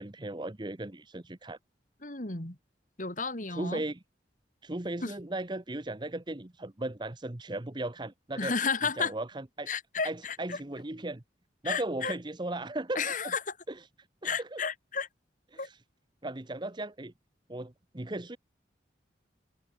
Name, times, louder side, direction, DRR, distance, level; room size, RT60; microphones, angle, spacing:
voice 1, 0.0-1.6 3.5-4.0 4.6-8.5 9.0-9.7 10.0-11.2 11.6-13.3 13.7-13.9 14.2-14.6 15.5-15.8 16.2-17.1 17.5-18.4, right 2 dB, 25° right, 1.0 m, -37 dB
voice 2, 2.0-2.6 3.0-3.8 5.0-5.1 8.4-9.1 9.7-10.6 11.6-12.1 12.9-13.4 14.2-15.1 15.6-15.7, left 5 dB, 45° left, 3.2 m, -32 dB
head